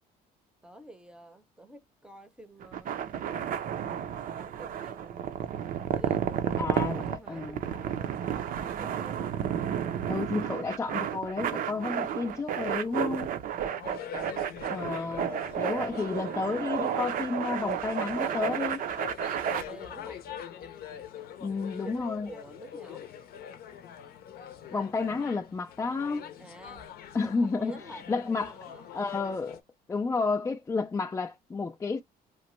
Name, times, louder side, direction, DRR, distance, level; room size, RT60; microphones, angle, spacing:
voice 1, 0.6-3.0 4.4-5.2 5.9-9.2 13.0-13.4 19.4-20.2 21.8-23.0 26.4-26.9 27.2-28.9, right 2 dB, 5° right, 0.7 m, -48 dB
sound 1, 2.6-19.6, right 9 dB, 55° right, 0.5 m, -32 dB
voice 2, 6.6-7.6 10.1-13.3 14.7-15.3 15.6-18.8 21.4-22.3 24.7-26.3 27.1-27.7 28.1-28.5 28.9-29.6 29.9-32.0, left 4 dB, 15° left, 0.3 m, -31 dB
sound 2, 13.6-29.6, left 8 dB, 65° left, 0.6 m, -43 dB
3.0 x 2.1 x 3.1 m
cardioid pair, 110°, 17 cm